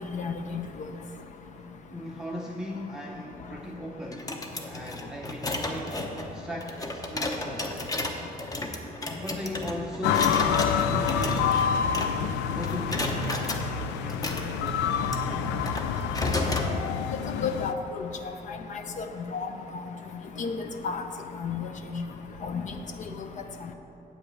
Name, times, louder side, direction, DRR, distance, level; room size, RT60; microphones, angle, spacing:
voice 1, 0.1-0.6 17.4-17.7 18.5-19.0 19.3-19.5 20.4-20.6 20.8-21.0 21.4-21.7 21.9-22.0 22.4-22.6, left 6 dB, 45° left, 6 dB, 0.6 m, -31 dB
voice 2, 1.9-4.4 4.7-7.7 9.1-11.6 12.5-15.5, left 1 dB, 5° right, -1 dB, 0.6 m, -38 dB
sound 1, 4.1-12.4 12.6-13.6 14.1-16.7, left 2 dB, 20° left, 0.9 m, -33 dB
sound 2, 10.0-17.7, left 8 dB, 90° left, 0.4 m, -28 dB
sound 3, 10.4-16.5, right 6 dB, 50° right, 0.4 m, -39 dB
8.5 x 5.1 x 7.4 m, 2.9 s
cardioid pair, 110°, 17 cm